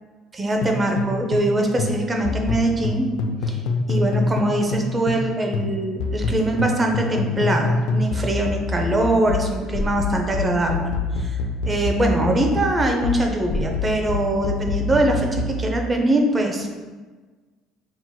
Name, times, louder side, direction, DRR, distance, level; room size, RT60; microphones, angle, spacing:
voice 1, 0.3-3.2 3.4-3.6 3.9-10.9 11.2-11.4 11.7-16.7, right 1 dB, 25° right, 2 dB, 0.6 m, -22 dB
sound 1, 0.6-5.3 5.5-15.6, left 3 dB, 75° left, 0.4 m, -25 dB
5.5 x 2.9 x 2.2 m, 1.3 s
supercardioid pair, 100°, 0 cm